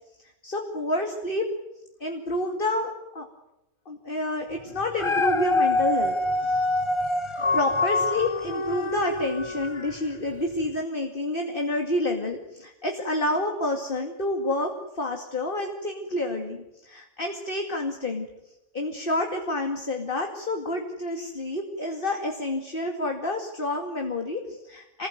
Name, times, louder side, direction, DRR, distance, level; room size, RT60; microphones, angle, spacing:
voice 1, 0.4-1.5 2.0-3.3 3.9-6.2 6.4-6.6 7.5-18.3 18.7-25.1, left 1 dB, 45° left, 3 dB, 2.6 m, -29 dB
Dog, 4.8-10.1 10.6-10.7, left 2 dB, 25° left, 1.0 m, -25 dB
28.0 x 20.0 x 9.3 m, 0.90 s
omnidirectional pair, 1.2 m